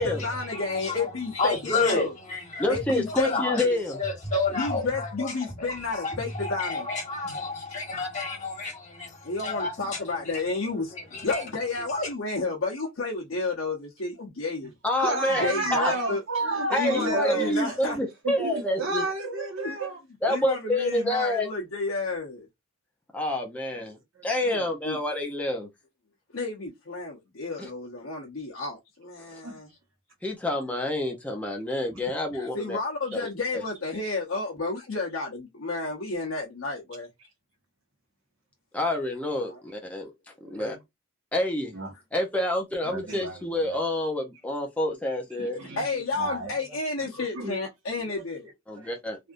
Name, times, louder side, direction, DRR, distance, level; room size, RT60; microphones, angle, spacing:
voice 1, 0.0-2.1 2.7-3.4 4.5-6.9 9.2-14.7 15.4-16.2 16.8-18.0 19.6-19.8 20.3-22.5 24.4-25.0 26.3-29.7 32.3-37.1 39.4-39.6 45.6-48.5, left 3 dB, 85° left, 0.9 m, -31 dB
voice 2, 0.5-1.0 1.3-2.8 3.1-5.3 5.6-10.0 10.9-11.4 12.0-12.1, left 3 dB, 35° left, 1.5 m, -31 dB
voice 3, 2.6-4.0 14.8-15.4 15.7-15.9 16.7-19.0 20.2-21.5 23.1-24.0 24.2-25.7 27.6-27.7 30.2-32.8 33.5-33.6 38.7-40.1 40.5-40.8 41.3-41.7 42.1-45.6 48.7-49.2, left 1 dB, 5° left, 0.6 m, -28 dB
voice 4, 15.0-17.8 18.2-20.0 24.1-24.2 29.4-29.6 40.4-40.7 41.7-41.9 42.8-43.8 45.4-46.5 47.1-47.6 48.0-48.3 48.8-49.0, right 2 dB, 75° right, 1.4 m, -31 dB
3.4 x 2.6 x 2.5 m
head